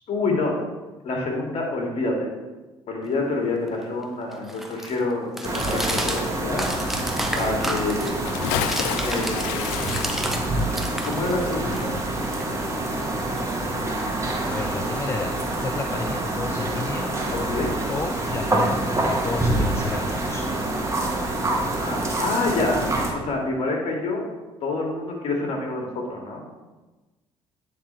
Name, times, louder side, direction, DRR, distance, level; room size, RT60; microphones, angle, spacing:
voice 1, 0.1-0.6 1.0-2.3 2.9-6.7 7.3-8.3 9.0-9.9 11.0-11.9 17.3-17.8 21.8-22.8 23.2-24.3 24.6-26.4, left 2 dB, 55° left, 1 dB, 2.0 m, -27 dB
sound 1, 3.1-10.5 10.7-12.9, right 1 dB, ahead, 1.1 m, -33 dB
sound 2, 5.4-23.1, right 1 dB, 25° right, 1.6 m, -26 dB
Bathtub (filling or washing) / Splash splatter, 8.1-13.1 13.4-13.5, left 11 dB, 80° left, 0.4 m, -32 dB
voice 2, 14.5-17.1 17.9-20.4, left 4 dB, 20° left, 6 dB, 0.5 m, -32 dB
9.5 x 3.8 x 4.3 m, 1.2 s
hypercardioid pair, 60°, 12 cm